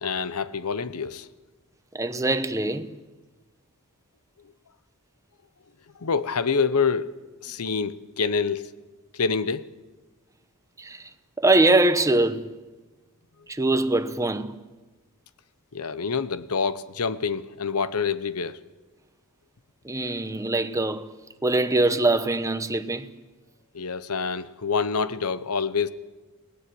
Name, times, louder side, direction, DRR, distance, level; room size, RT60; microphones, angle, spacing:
voice 1, 0.0-1.3 6.0-8.7 9.1-9.7 15.7-18.6 23.7-25.9, left 5 dB, 85° left, 0.9 m, -27 dB
voice 2, 1.9-3.0 10.8-11.1 11.4-12.5 13.5-14.6 19.8-21.1 21.4-23.1, right 2 dB, 15° right, 1.0 m, -23 dB
28.5 x 19.5 x 7.8 m
head